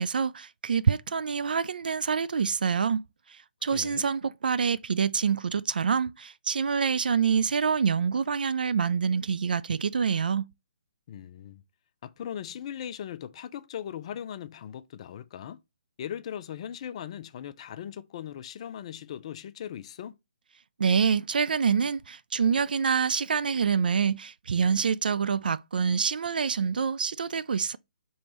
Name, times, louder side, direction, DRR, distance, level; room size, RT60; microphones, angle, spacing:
voice 1, 0.0-3.0 3.6-10.5 20.8-27.8, right 6 dB, 70° right, 0.4 m, -26 dB
voice 2, 3.7-4.1 11.1-11.6 12.0-15.6 16.0-20.1, left 9 dB, 40° left, 0.5 m, -39 dB
5.3 x 3.2 x 2.9 m
hypercardioid pair, 145°, 5 cm